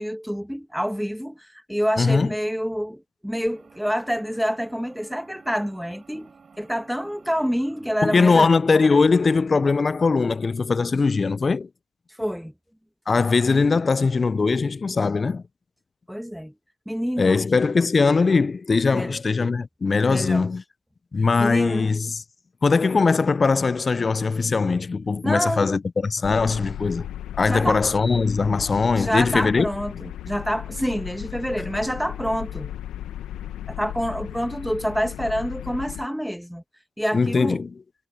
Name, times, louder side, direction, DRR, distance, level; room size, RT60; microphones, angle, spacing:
voice 1, 0.0-8.5 12.2-12.5 16.1-16.5 16.8-17.4 18.9-19.1 20.1-20.5 21.4-21.9 25.2-25.7 27.5-27.8 28.9-32.7 33.7-36.6 37.0-37.6, equal, ahead, 1.7 m, -27 dB
voice 2, 2.0-2.3 8.0-11.7 13.1-15.4 17.2-20.6 21.1-22.2 22.6-27.1 27.4-29.7 37.1-37.7, left 4 dB, 40° left, 0.6 m, -21 dB
sound 1, 3.5-9.8, right 5 dB, 45° right, 6.9 m, -53 dB
sound 2, 26.2-36.1, left 11 dB, 75° left, 1.5 m, -36 dB
supercardioid pair, 50°, 0 cm